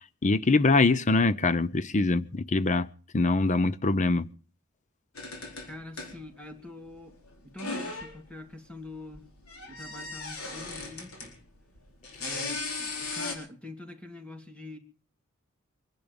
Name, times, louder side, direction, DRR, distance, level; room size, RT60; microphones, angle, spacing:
voice 1, 0.2-2.9 3.1-4.3, left 3 dB, 35° left, 0.7 m, -23 dB
sound 1, 5.1-6.5 6.8-8.2 8.9-11.4 11.7-13.3, left 3 dB, 85° left, 4.3 m, -37 dB
voice 2, 5.7-7.1 7.4-9.3 9.7-11.4 12.2-14.8, left 1 dB, 5° left, 2.6 m, -44 dB
24.0 x 11.0 x 5.3 m
head